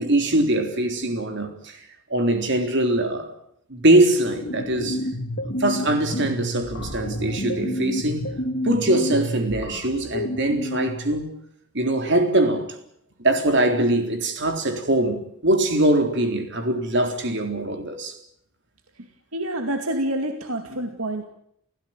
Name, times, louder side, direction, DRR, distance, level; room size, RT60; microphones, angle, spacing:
voice 1, 0.0-1.8 2.1-3.3 3.7-5.0 5.6-8.3 8.6-11.3 11.7-12.6 13.2-18.2, right 1 dB, 55° right, 3.8 m, -22 dB
sound 1, 4.0-11.2, equal, 50° left, 3.0 m, -30 dB
voice 2, 19.3-21.2, right 1 dB, 75° right, 2.4 m, -27 dB
30.0 x 16.0 x 9.0 m
head